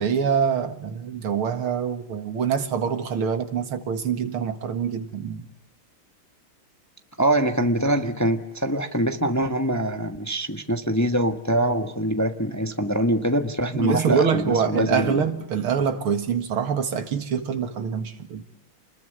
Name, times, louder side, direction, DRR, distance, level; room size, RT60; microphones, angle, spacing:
voice 1, 0.0-5.5 13.7-18.4, right 7 dB, 85° right, 2.7 m, -25 dB
voice 2, 7.2-15.3, right 1 dB, 10° left, 1.1 m, -24 dB
29.5 x 21.0 x 8.0 m
omnidirectional pair, 2.3 m